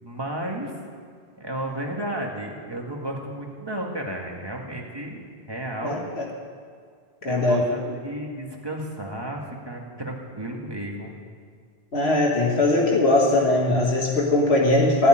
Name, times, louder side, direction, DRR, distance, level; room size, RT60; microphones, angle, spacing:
voice 1, 0.0-0.7 1.4-5.2 5.5-6.0 7.2-11.1, right 1 dB, 25° right, -1 dB, 1.8 m, -32 dB
voice 2, 5.8-6.3 7.2-7.6 11.9-15.1, left 2 dB, 80° left, -1 dB, 1.8 m, -20 dB
15.5 x 6.7 x 10.0 m, 2.1 s
omnidirectional pair, 1.1 m